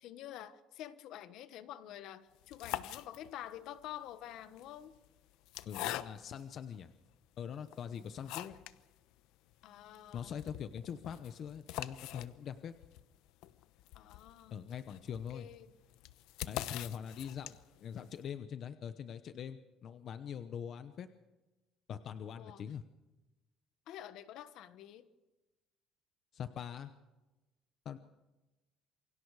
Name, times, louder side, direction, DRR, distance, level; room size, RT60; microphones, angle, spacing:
voice 1, 0.0-4.9 9.6-10.3 13.9-14.6 15.3-15.7 22.4-22.6 23.9-25.1, left 11 dB, 60° left, 12 dB, 1.3 m, -48 dB
sound 1, 2.3-3.6 4.4-6.5 7.1-7.2 7.7-8.8 9.1-9.2 9.5-9.6 9.9-17.8, left 14 dB, 90° left, 0.9 m, -44 dB
voice 2, 5.7-6.9 7.4-8.6 10.1-12.7 14.5-15.5 16.5-21.1 21.9-22.8 26.3-26.9 27.8-28.0, left 8 dB, 40° left, 10 dB, 0.9 m, -43 dB
28.0 x 24.0 x 4.9 m, 1.1 s
cardioid pair, 170°, 0 cm